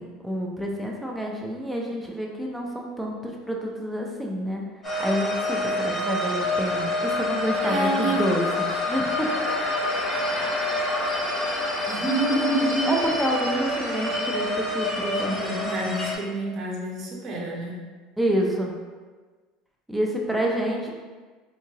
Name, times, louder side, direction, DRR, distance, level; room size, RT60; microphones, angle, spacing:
voice 1, 0.0-4.6 5.0-9.7 12.9-15.4 15.8-15.9 18.2-18.7 19.9-20.9, equal, 5° right, -1 dB, 0.5 m, -28 dB
sound 1, 4.8-16.2, left 2 dB, 20° left, 1.1 m, -27 dB
voice 2, 7.6-8.2 11.9-12.9 15.3-17.8, right 2 dB, 40° right, -2 dB, 0.8 m, -27 dB
3.6 x 2.8 x 2.8 m, 1.4 s
supercardioid pair, 125°, 0 cm